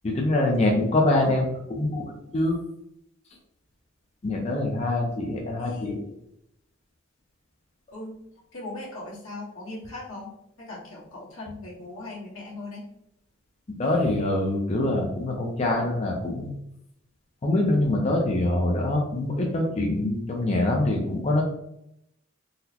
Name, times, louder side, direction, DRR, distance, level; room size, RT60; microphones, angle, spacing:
voice 1, 0.0-1.4 1.7-2.6 4.2-6.0 13.8-16.5 17.4-21.4, left 2 dB, 30° left, 0 dB, 0.4 m, -24 dB
voice 2, 5.6-6.1 7.9-8.2 8.5-10.3 10.7-12.8, left 2 dB, 85° left, -6 dB, 1.3 m, -39 dB
3.9 x 2.0 x 2.8 m, 0.79 s
head